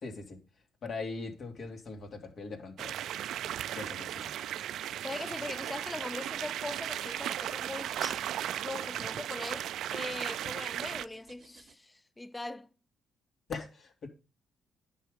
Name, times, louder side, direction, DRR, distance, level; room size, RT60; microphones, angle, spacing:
voice 1, 0.0-0.4 0.8-3.0 3.7-4.3 13.5-14.1, left 4 dB, 55° left, 2.6 m, -41 dB
sound 1, 2.8-11.0, right 11 dB, 75° right, 0.4 m, -36 dB
voice 2, 5.0-8.2 8.6-12.7, left 2 dB, 15° left, 0.7 m, -41 dB
sound 2, 6.7-9.6 9.9-11.7, right 6 dB, 55° right, 0.8 m, -53 dB
10.5 x 5.8 x 5.2 m
cardioid pair, 90°, 0 cm